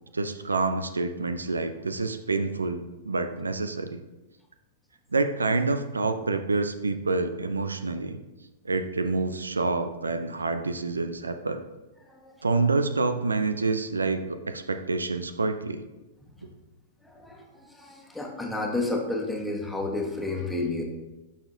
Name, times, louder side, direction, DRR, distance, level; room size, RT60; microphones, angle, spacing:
voice 1, 0.1-4.0 5.1-8.2 8.6-11.6 12.4-15.8 16.4-16.5, right 3 dB, 90° right, 9 dB, 0.5 m, -27 dB
voice 2, 17.0-20.8, left 2 dB, 5° left, -1 dB, 1.3 m, -31 dB
12.0 x 4.2 x 2.7 m, 1.1 s
hypercardioid pair, 105°, 0 cm